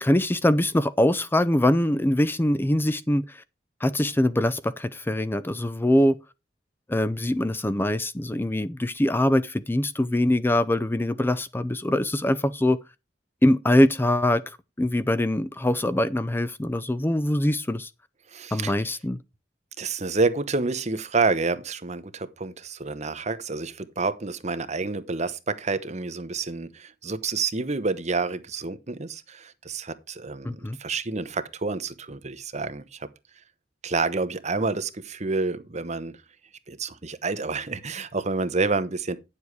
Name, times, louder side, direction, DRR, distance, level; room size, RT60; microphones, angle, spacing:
voice 1, 0.0-3.4 3.8-6.2 6.9-12.8 13.4-14.4 14.8-17.9 18.5-19.2 30.4-30.8, left 1 dB, 10° left, 0.4 m, -23 dB
voice 2, 18.3-18.7 19.8-33.1 33.8-36.2 36.7-39.2, right 3 dB, 40° right, 1.0 m, -28 dB
9.9 x 7.1 x 4.7 m
head